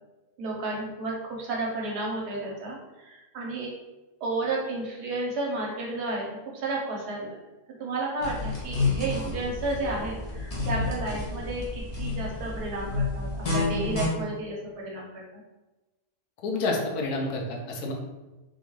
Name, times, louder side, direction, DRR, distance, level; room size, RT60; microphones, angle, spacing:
voice 1, 0.4-3.7 4.2-6.3 6.5-7.4 7.8-15.4, right 2 dB, 75° right, -2 dB, 1.3 m, -32 dB
sound 1, 8.2-14.1, left 3 dB, 55° left, 0.4 m, -30 dB
voice 2, 16.4-17.9, left 2 dB, 70° left, 1 dB, 1.2 m, -29 dB
4.0 x 2.3 x 3.0 m, 1.1 s
omnidirectional pair, 1.8 m